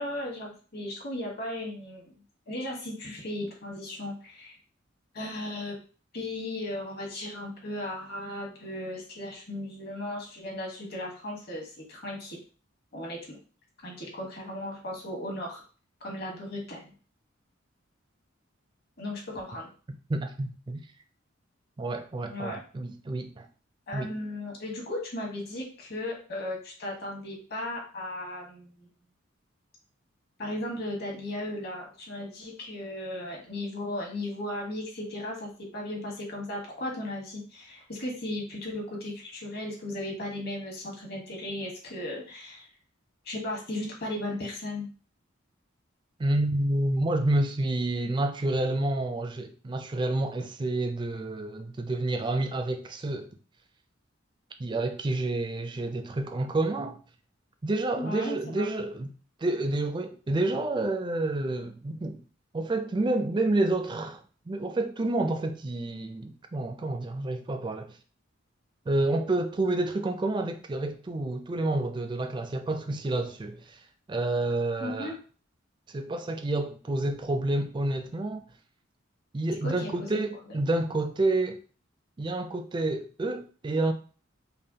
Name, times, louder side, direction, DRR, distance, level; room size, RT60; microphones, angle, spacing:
voice 1, 0.0-2.1 2.5-4.6 5.1-5.8 6.1-12.4 12.9-13.4 13.8-15.6 16.0-16.9 19.0-19.7 22.3-22.6 23.9-28.9 30.4-42.7 43.2-44.9 58.0-58.7 74.8-75.2 79.6-80.2, left 1 dB, 55° left, 1.2 m, -36 dB
voice 2, 20.1-20.8 21.8-23.5 23.9-24.1 46.2-53.3 54.6-57.0 57.6-59.1 59.4-62.2 62.5-64.2 64.5-67.9 68.9-73.8 74.1-75.1 75.9-78.4 79.3-81.6 82.2-83.9, right 2 dB, 25° right, 0.4 m, -29 dB
5.3 x 2.1 x 2.8 m
head